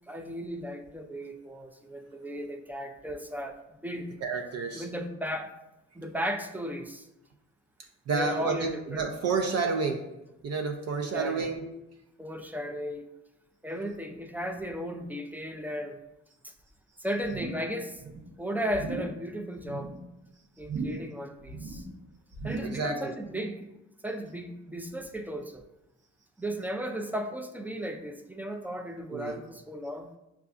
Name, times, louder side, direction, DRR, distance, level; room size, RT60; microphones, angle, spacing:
voice 1, 0.1-3.6 3.8-4.1 4.7-5.5 5.9-7.1 8.1-9.1 11.1-11.5 12.2-13.0 13.6-16.0 16.4-16.5 17.0-18.0 18.4-19.9 20.6-21.9 22.4-23.7 24.0-25.6 26.4-30.1, equal, 5° right, 4 dB, 0.3 m, -35 dB
voice 2, 4.2-4.9 8.1-10.1 10.4-11.7 22.6-23.1 29.1-29.4, right 4 dB, 55° right, 3 dB, 0.5 m, -30 dB
sound 1, 17.2-17.7 18.0-18.3 18.7-19.2 19.6-20.0 20.6-21.2 21.4-21.9 22.3-22.9 23.2-23.3, right 3 dB, 80° right, 0.9 m, -37 dB
6.5 x 2.4 x 2.5 m, 0.93 s
cardioid pair, 90°, 30 cm